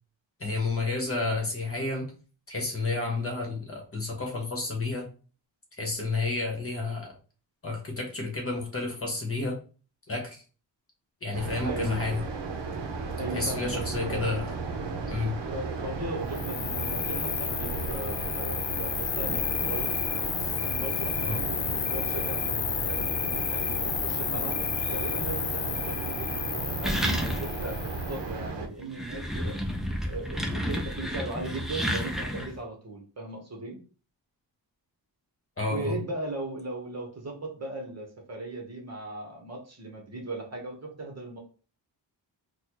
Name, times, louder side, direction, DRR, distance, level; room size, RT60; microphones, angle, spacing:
voice 1, 0.4-2.1 2.5-5.0 5.8-7.1 7.6-9.6 10.1-10.4 11.2-12.2 13.3-14.5 15.0-15.4 21.3-21.4 35.6-36.0, left 3 dB, 30° left, 1 dB, 1.1 m, -30 dB
sound 1, 11.3-28.7, right 4 dB, 70° right, 0.7 m, -34 dB
voice 2, 11.6-12.0 13.2-14.4 15.5-19.9 20.6-24.6 24.9-29.6 30.1-33.8 35.7-41.4, right 2 dB, 35° right, 0 dB, 1.1 m, -38 dB
Cricket, 16.3-28.3, left 9 dB, 75° left, 0.6 m, -32 dB
sound 2, 26.8-27.7 28.0-28.1 28.8-32.6, equal, ahead, 0.6 m, -31 dB
4.1 x 2.3 x 2.9 m, 0.38 s
cardioid pair, 80°, 44 cm